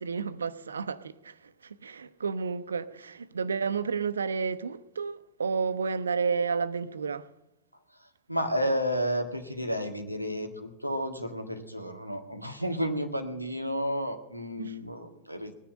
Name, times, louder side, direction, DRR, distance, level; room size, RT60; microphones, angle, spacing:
voice 1, 0.0-7.3 14.6-14.9, right 5 dB, 70° right, 0.7 m, -31 dB
voice 2, 8.3-15.5, equal, 90° left, 1.7 m, -31 dB
19.0 x 10.0 x 7.4 m
figure-of-eight pair, 90°, 0 cm